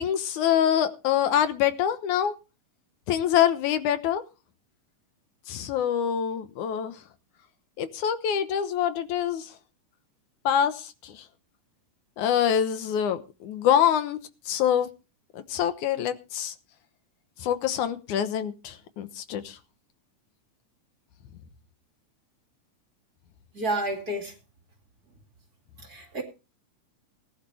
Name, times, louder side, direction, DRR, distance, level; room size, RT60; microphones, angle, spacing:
voice 1, 0.0-2.3 3.1-4.2 5.5-6.9 7.8-9.5 10.5-11.2 12.2-14.2 14.5-14.9 15.3-16.5 17.4-19.6, left 9 dB, 80° left, 11 dB, 2.5 m, -25 dB
voice 2, 23.5-24.3 25.8-26.2, right 1 dB, 30° right, 3 dB, 2.5 m, -30 dB
19.0 x 10.5 x 3.4 m, 0.31 s
omnidirectional pair, 3.5 m